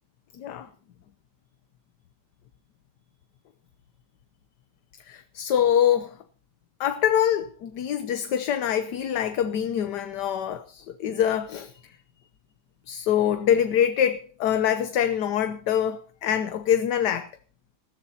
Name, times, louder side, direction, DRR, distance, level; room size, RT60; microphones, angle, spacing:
voice 1, 0.4-0.7 5.1-6.2 6.8-11.7 12.9-17.3, left 9 dB, 75° left, 1.4 m, -24 dB
19.5 x 15.0 x 2.8 m
omnidirectional pair, 1.9 m